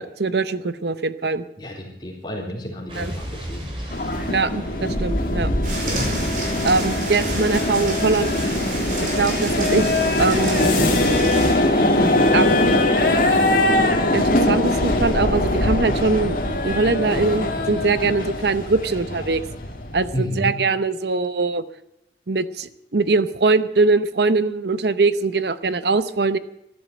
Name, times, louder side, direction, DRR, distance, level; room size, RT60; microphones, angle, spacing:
voice 1, 0.0-1.5 3.0-3.1 4.3-5.5 6.6-8.3 9.0-10.8 12.3-12.7 14.1-19.4 19.9-21.6 22.3-26.4, right 3 dB, 70° right, 14 dB, 0.8 m, -22 dB
voice 2, 1.6-4.1 5.8-6.1 20.1-20.6, equal, 25° left, -1 dB, 3.6 m, -31 dB
Explosion, 2.9-7.2, equal, 30° right, 4.4 m, -36 dB
sound 1, 3.9-20.1, left 1 dB, 50° left, 2.3 m, -21 dB
sound 2, 5.6-11.6, right 1 dB, 50° right, 4.9 m, -29 dB
14.0 x 11.5 x 7.7 m, 0.82 s
head